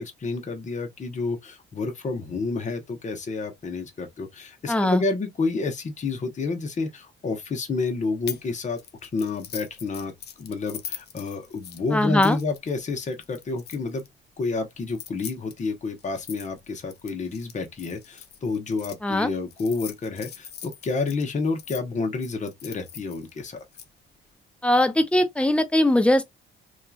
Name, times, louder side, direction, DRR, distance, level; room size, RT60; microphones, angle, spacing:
voice 1, 0.0-10.1 10.4-14.0 14.4-23.6, left 3 dB, 35° left, 0.9 m, -29 dB
voice 2, 4.7-5.0 11.9-12.4 19.0-19.3 24.6-26.2, left 1 dB, 5° left, 0.6 m, -20 dB
sound 1, 8.3-8.5 8.8-14.1 14.8-18.9 19.5-21.8 22.2-23.8, left 9 dB, 55° left, 0.6 m, -41 dB
2.8 x 2.4 x 2.3 m
cardioid pair, 90°, 20 cm